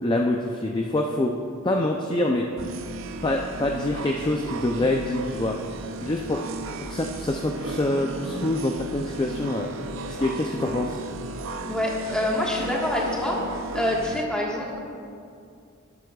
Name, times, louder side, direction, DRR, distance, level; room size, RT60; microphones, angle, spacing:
voice 1, 0.0-1.3 1.6-2.5 3.2-5.6 6.0-6.5 6.8-9.7 10.0-11.0, left 1 dB, 20° left, 2 dB, 0.4 m, -25 dB
sound 1, 2.6-14.2, right 2 dB, 65° right, 0.5 m, -35 dB
voice 2, 11.7-13.4 13.7-14.8, left 1 dB, 5° left, -4 dB, 1.4 m, -26 dB
12.5 x 11.0 x 2.3 m, 2.4 s
head